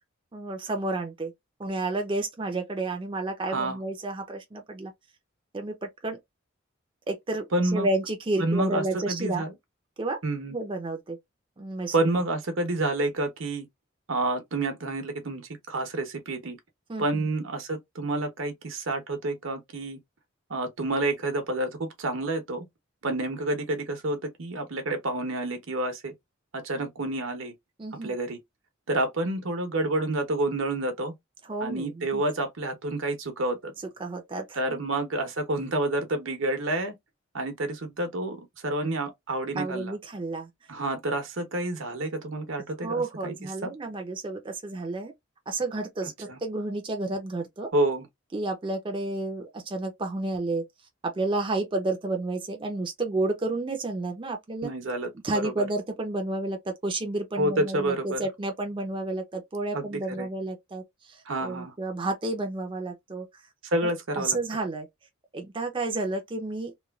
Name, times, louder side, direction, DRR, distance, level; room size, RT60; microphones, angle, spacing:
voice 1, 0.3-1.3 1.6-4.9 5.5-6.2 7.1-7.5 7.7-9.5 10.0-10.2 10.5-11.2 11.6-11.9 16.9-17.3 27.8-28.1 31.4-32.2 34.0-34.9 39.6-40.5 42.8-45.1 45.5-47.7 48.3-50.6 51.0-54.7 55.2-63.3 63.8-64.9 65.3-66.7, right 2 dB, 25° right, 0.5 m, -31 dB
voice 2, 3.5-3.8 7.5-7.9 8.4-9.5 10.2-10.6 11.9-13.7 14.1-16.6 17.0-20.0 20.5-22.7 23.0-26.1 26.5-27.5 28.0-28.4 28.9-31.1 31.6-33.7 34.6-36.9 37.3-39.9 40.7-43.3 43.6-43.7 46.3-46.4 47.7-48.1 54.6-55.7 57.4-58.2 59.7-60.3 61.3-61.7 63.6-64.4, right 2 dB, 80° right, 0.9 m, -29 dB
3.0 x 2.3 x 2.3 m
head